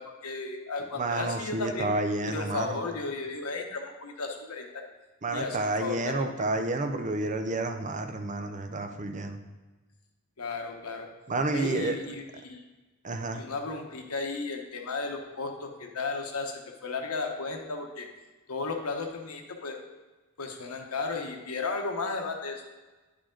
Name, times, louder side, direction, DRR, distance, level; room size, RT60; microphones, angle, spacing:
voice 1, 0.0-2.0 2.3-4.8 5.3-6.5 10.4-11.1 11.5-12.6 13.3-18.1 18.5-19.8 20.4-22.6, left 3 dB, 75° left, 3 dB, 1.0 m, -34 dB
voice 2, 1.0-2.8 5.2-9.4 11.3-12.0 13.0-13.4, right 2 dB, 35° right, 6 dB, 0.6 m, -30 dB
9.7 x 5.0 x 3.8 m, 1.2 s
head